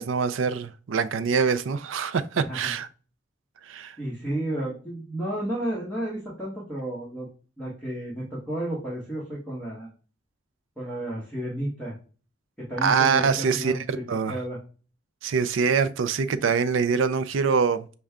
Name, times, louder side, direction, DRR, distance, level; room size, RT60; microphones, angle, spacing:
voice 1, 0.0-2.9 3.7-4.0 12.8-13.7 14.1-14.4 15.2-17.9, right 5 dB, 85° right, 0.4 m, -24 dB
voice 2, 2.3-2.7 4.0-7.3 7.6-9.9 10.8-11.9 12.6-14.0 14.3-14.6, right 1 dB, 5° left, 1.4 m, -32 dB
6.3 x 2.3 x 3.5 m
head